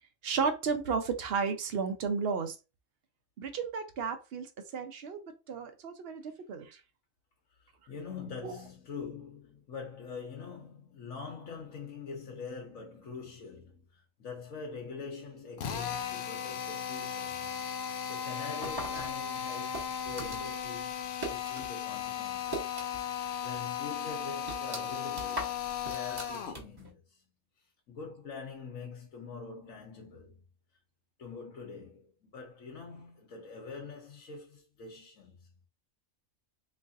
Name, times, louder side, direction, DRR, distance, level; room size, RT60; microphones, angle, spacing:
voice 1, 0.2-2.5 3.4-4.5 4.7-5.2 5.5-6.2 6.5-6.7 8.4-8.5, right 5 dB, 55° right, 0.8 m, -32 dB
voice 2, 7.5-17.4 17.8-21.0 21.3-22.7 23.1-27.2 27.9-30.4 31.2-35.5, left 5 dB, 80° left, 1.3 m, -44 dB
Drill, 15.6-26.6, left 8 dB, 60° left, 0.7 m, -36 dB
sound 1, 18.6-21.7 22.0-23.2 23.5-23.6 24.1-26.9, right 1 dB, 20° right, 1.0 m, -41 dB
3.6 x 3.1 x 2.6 m
omnidirectional pair, 1.4 m